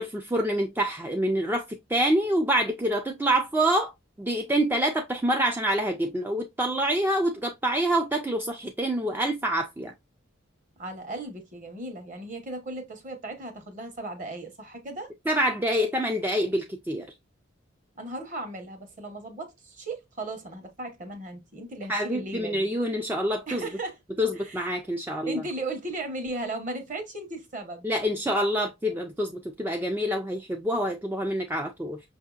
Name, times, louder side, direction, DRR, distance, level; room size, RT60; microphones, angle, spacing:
voice 1, 0.0-3.9 4.2-9.9 15.3-17.1 21.9-23.7 24.2-25.4 27.8-32.0, right 1 dB, 10° right, 0.3 m, -26 dB
voice 2, 10.8-15.1 18.0-22.7 23.5-24.0 24.3-24.7 25.2-27.9, right 2 dB, 40° right, 1.1 m, -36 dB
5.6 x 2.7 x 2.3 m
head